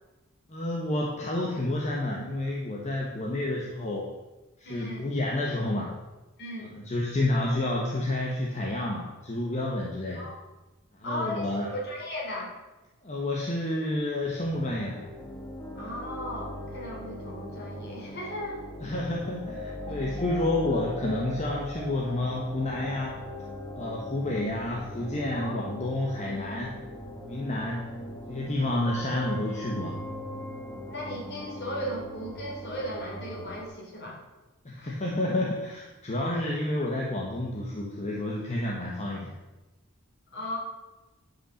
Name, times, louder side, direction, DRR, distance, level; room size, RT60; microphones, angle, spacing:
voice 1, 0.5-4.1 4.6-5.9 6.6-10.2 10.9-11.7 13.0-15.1 18.8-23.2 23.7-26.7 27.2-27.8 28.3-30.0 34.6-39.3, left 1 dB, 35° left, -2 dB, 1.3 m, -30 dB
voice 2, 4.6-5.1 6.4-6.8 10.1-10.4 11.0-12.5 15.8-18.7 19.9-20.0 25.3-25.6 30.9-34.2 34.8-35.3 40.3-40.6, equal, 55° left, -3 dB, 3.6 m, -37 dB
sound 1, 14.2-33.6, left 1 dB, 15° left, 1.6 m, -40 dB
11.0 x 5.7 x 6.5 m, 1.1 s
head